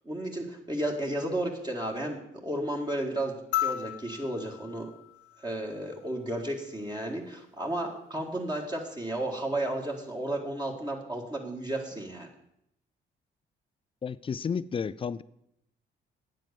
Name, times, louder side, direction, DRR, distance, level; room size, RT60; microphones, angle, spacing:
voice 1, 0.1-4.9 5.4-12.3, right 1 dB, 20° right, 1.9 m, -33 dB
sound 1, 3.5-6.1 7.7-7.8, left 12 dB, 90° left, 0.6 m, -35 dB
voice 2, 14.0-15.2, left 6 dB, 25° left, 0.4 m, -32 dB
9.4 x 7.5 x 6.9 m
cardioid pair, 90°, 20 cm